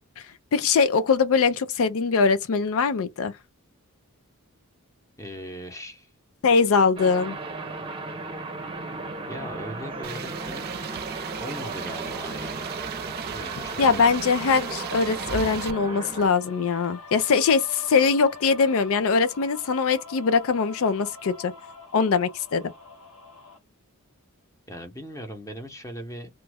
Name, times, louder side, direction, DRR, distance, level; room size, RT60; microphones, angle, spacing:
voice 1, 0.5-3.3 6.4-7.4 13.8-21.5 21.9-22.6, left 5 dB, 65° left, 0.4 m, -22 dB
voice 2, 5.2-6.1 9.3-10.7 11.4-12.6 13.3-14.1 24.7-26.3, equal, 15° left, 0.8 m, -39 dB
sound 1, 7.0-16.3, right 3 dB, 25° right, 0.7 m, -35 dB
sound 2, 10.0-23.6, left 3 dB, 90° left, 1.4 m, -45 dB
sound 3, 10.0-15.7, right 9 dB, 45° right, 0.3 m, -37 dB
3.0 x 2.3 x 3.4 m
head